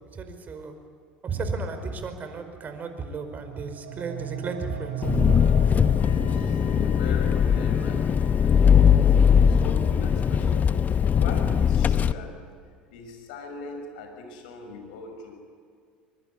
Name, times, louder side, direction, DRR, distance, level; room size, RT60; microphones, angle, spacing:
voice 1, 0.1-0.7 1.2-5.0, right 4 dB, 35° right, 7 dB, 4.9 m, -34 dB
sound 1, 3.1-7.1, right 9 dB, 70° right, 1.5 m, -36 dB
Engine, 5.0-12.1, left 7 dB, 35° left, 1.0 m, -20 dB
voice 2, 5.9-9.0 9.5-12.3 12.9-15.3, left 3 dB, 75° left, 4 dB, 6.5 m, -40 dB
sound 2, 6.0-11.7, right 5 dB, 55° left, 7.2 m, -44 dB
24.0 x 23.5 x 9.8 m, 2.1 s
hypercardioid pair, 75°, 5 cm